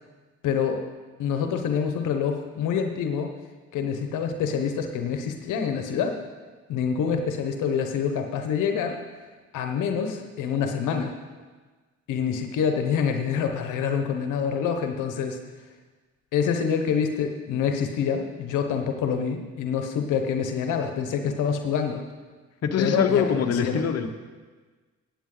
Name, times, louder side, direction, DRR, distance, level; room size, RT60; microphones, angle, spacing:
voice 1, 0.4-0.8 1.2-3.3 3.7-6.2 6.7-9.0 9.5-11.1 12.1-15.4 16.3-22.0 22.8-23.9, left 7 dB, 85° left, 5 dB, 1.0 m, -26 dB
voice 2, 22.6-24.1, left 7 dB, 55° left, 6 dB, 1.1 m, -23 dB
17.5 x 8.4 x 3.9 m, 1.4 s
cardioid pair, 90°, 30 cm